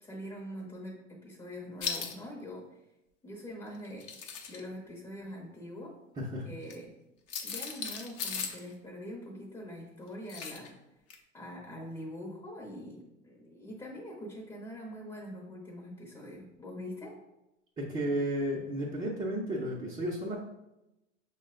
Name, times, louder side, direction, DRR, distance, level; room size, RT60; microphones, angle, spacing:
voice 1, 0.0-2.6 3.2-4.1 4.5-6.0 6.4-6.9 7.4-10.7 11.3-17.2, equal, 10° left, -2 dB, 0.9 m, -43 dB
sound 1, 1.8-2.1 3.8-4.6 6.6-6.7 7.3-8.6 10.3-10.7 11.1-11.2, left 6 dB, 40° left, 0.8 m, -37 dB
voice 2, 17.8-20.4, right 1 dB, 15° right, -5 dB, 0.7 m, -33 dB
5.8 x 2.2 x 3.7 m, 0.93 s
hypercardioid pair, 105°, 38 cm